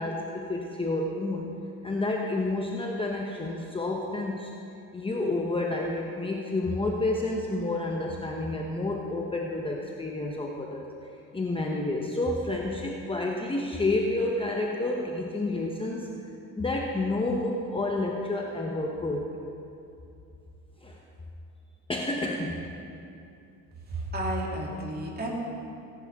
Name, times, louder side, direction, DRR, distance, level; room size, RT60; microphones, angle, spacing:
voice 1, 0.0-1.5 1.8-4.5 4.9-10.9 11.3-16.1 16.6-19.3 20.8-21.0 21.9-22.6, left 2 dB, 15° left, 0 dB, 1.0 m, -29 dB
voice 2, 23.9-25.3, right 1 dB, 25° right, -2 dB, 3.0 m, -32 dB
17.5 x 10.5 x 3.7 m, 2.6 s
supercardioid pair, 95°, 38 cm